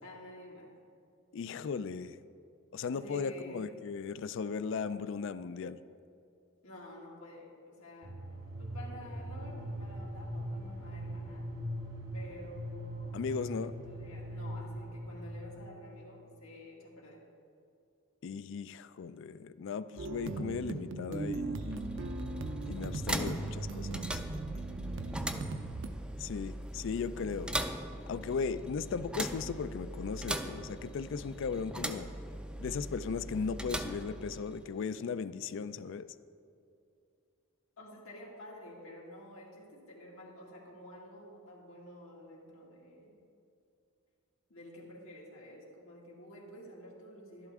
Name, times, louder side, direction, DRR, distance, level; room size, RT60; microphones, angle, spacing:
voice 1, 0.0-0.7 2.9-3.8 6.6-8.2 8.6-11.5 12.1-17.2 24.5-25.2 37.8-43.2 44.5-47.5, equal, 90° left, -2 dB, 2.2 m, -50 dB
voice 2, 1.3-2.2 2.7-5.8 13.1-13.7 18.2-21.7 22.6-24.2 26.2-27.6 28.1-32.1 32.6-36.1, left 5 dB, 65° left, 14 dB, 0.4 m, -37 dB
sound 1, 8.0-15.8, equal, 85° right, 2.4 m, -41 dB
sound 2, 20.0-25.9, right 2 dB, 65° right, 0.6 m, -38 dB
sound 3, 21.5-34.8, right 1 dB, 5° right, 0.4 m, -40 dB
12.0 x 11.5 x 3.6 m, 2.5 s
head